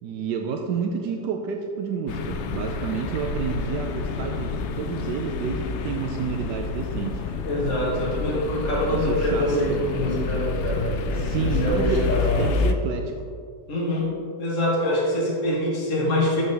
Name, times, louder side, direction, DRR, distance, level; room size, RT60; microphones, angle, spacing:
voice 1, 0.0-7.7 8.9-9.8 11.2-12.1 12.4-13.1, right 6 dB, 80° right, 3 dB, 1.3 m, -30 dB
sound 1, 2.1-12.7, left 5 dB, 85° left, 0.6 m, -28 dB
voice 2, 7.4-12.5 13.7-14.1 14.4-16.4, left 1 dB, 45° left, -6 dB, 2.2 m, -25 dB
12.5 x 6.5 x 3.4 m, 2.4 s
omnidirectional pair, 1.9 m